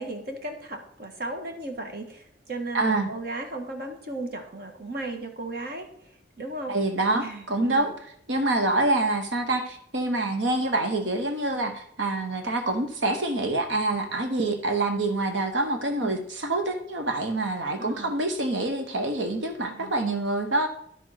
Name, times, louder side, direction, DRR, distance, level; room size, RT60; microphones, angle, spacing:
voice 1, 0.0-5.9 6.4-6.8 7.1-7.9 16.0-16.3 17.8-18.1 19.6-19.9, right 2 dB, 55° right, 4 dB, 1.6 m, -35 dB
voice 2, 2.7-3.1 6.7-7.9 8.3-20.7, right 2 dB, 90° right, 6 dB, 1.2 m, -26 dB
11.0 x 5.2 x 5.8 m, 0.66 s
head